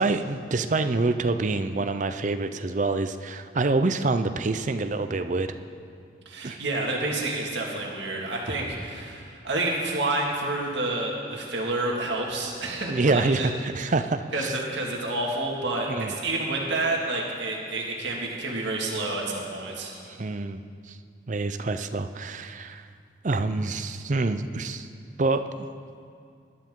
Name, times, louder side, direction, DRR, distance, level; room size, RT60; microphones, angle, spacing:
voice 1, 0.0-5.5 6.4-6.6 12.9-14.5 15.9-16.1 20.1-21.0 21.3-22.8 23.2-24.9 25.2-25.7, right 3 dB, 40° right, 9 dB, 0.5 m, -26 dB
voice 2, 6.3-13.5 14.3-19.9, right 2 dB, 75° right, -2 dB, 2.0 m, -29 dB
19.5 x 12.0 x 3.8 m, 2.3 s
head